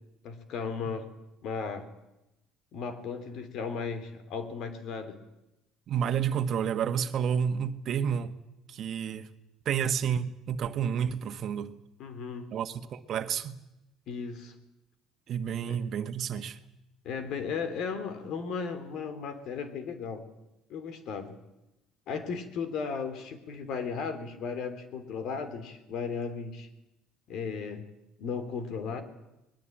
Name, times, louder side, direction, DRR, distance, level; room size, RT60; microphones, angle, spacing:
voice 1, 0.2-1.1 1.4-1.8 2.7-5.2 12.0-12.5 14.1-14.5 15.7-15.8 17.0-20.2 20.7-21.3 22.1-26.7 27.3-27.8 28.2-29.0, left 5 dB, 65° left, 3.4 m, -35 dB
voice 2, 5.9-8.3 8.7-9.3 9.6-11.8 12.5-13.6 15.3-16.6, right 8 dB, 55° right, 1.5 m, -30 dB
21.0 x 19.5 x 9.0 m
supercardioid pair, 85°, 0 cm